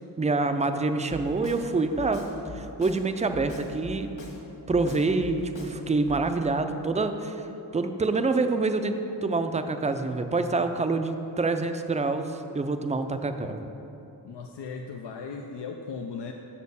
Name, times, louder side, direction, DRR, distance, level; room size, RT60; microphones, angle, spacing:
voice 1, 0.2-2.2 2.5-4.1 4.7-7.4 7.7-8.9 9.2-13.7, right 3 dB, 20° right, 7 dB, 0.4 m, -26 dB
Drum kit, 1.1-1.6 2.0-3.0 3.3-4.4 4.7-5.7 6.1-6.2, left 2 dB, 55° left, 1.6 m, -41 dB
voice 2, 14.2-16.3, left 5 dB, 80° left, 2 dB, 0.6 m, -37 dB
7.2 x 4.3 x 6.9 m, 2.9 s
wide cardioid pair, 85°, 41 cm